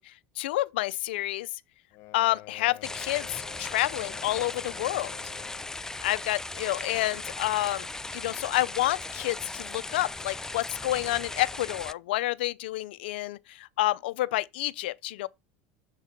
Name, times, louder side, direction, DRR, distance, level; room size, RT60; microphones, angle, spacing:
voice 1, 0.0-1.5 2.1-5.1 6.0-7.9 8.1-15.3, left 17 dB, 85° left, 0.4 m, -29 dB
sound 1, 1.9-5.8, left 17 dB, 60° left, 1.3 m, -48 dB
sound 2, 2.8-11.9, left 2 dB, 10° left, 0.4 m, -38 dB
7.2 x 3.7 x 5.8 m
supercardioid pair, 100°, 5 cm